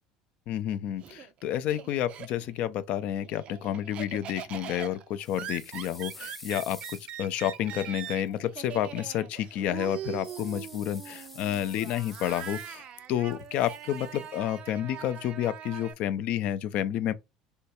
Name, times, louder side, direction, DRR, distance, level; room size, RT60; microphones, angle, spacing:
voice 1, 0.5-6.8 7.2-12.8 13.1-17.1, left 11 dB, 55° left, 0.4 m, -30 dB
Laughter, 0.5-2.7 3.0-15.9, right 9 dB, 50° right, 0.4 m, -42 dB
sound 1, 5.2-8.2 10.2-13.1 13.3-14.4, left 1 dB, 5° left, 0.6 m, -49 dB
3.5 x 2.2 x 2.9 m
hypercardioid pair, 70°, 3 cm